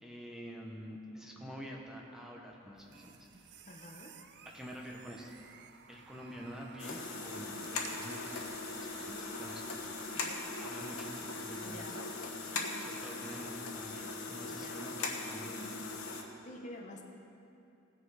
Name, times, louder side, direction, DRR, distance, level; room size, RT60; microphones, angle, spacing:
voice 1, 0.0-3.6 4.5-5.3 5.9-10.1 10.6-12.1 12.8-15.9, equal, 5° right, -1 dB, 0.9 m, -48 dB
sound 1, 2.8-11.7, right 6 dB, 55° right, 0.6 m, -54 dB
voice 2, 3.6-4.2 10.1-10.5 11.6-12.0 12.5-12.8 14.5-14.8 16.4-17.0, left 1 dB, 35° left, 1 dB, 1.0 m, -49 dB
sound 2, 6.8-16.2, left 3 dB, 85° left, 1.2 m, -40 dB
17.5 x 6.8 x 4.8 m, 2.7 s
head